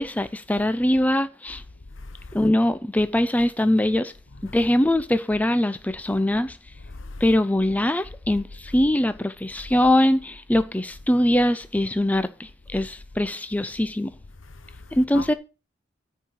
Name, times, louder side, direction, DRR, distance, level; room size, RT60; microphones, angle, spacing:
voice 1, 0.0-1.6 2.3-4.1 4.5-6.6 7.2-14.1 14.9-15.3, left 1 dB, 10° left, 0.4 m, -22 dB
voice 2, 1.9-2.5 4.3-4.6 6.8-7.3 14.4-15.3, left 3 dB, 70° left, 0.9 m, -40 dB
9.5 x 4.7 x 6.8 m
head